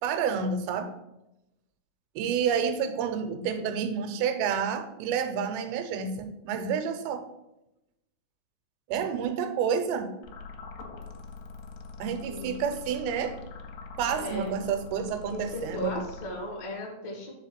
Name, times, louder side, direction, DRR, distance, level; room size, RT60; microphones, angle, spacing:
voice 1, 0.0-0.9 2.2-7.3 8.9-10.1 12.0-13.4 14.0-16.0, right 7 dB, 85° right, 8 dB, 2.9 m, -29 dB
sound 1, 10.2-16.7, left 4 dB, 90° left, 2.9 m, -44 dB
voice 2, 12.3-12.6 14.2-14.6 15.3-17.3, left 1 dB, 55° left, 0 dB, 1.2 m, -36 dB
5.2 x 4.9 x 5.8 m, 0.90 s
omnidirectional pair, 4.9 m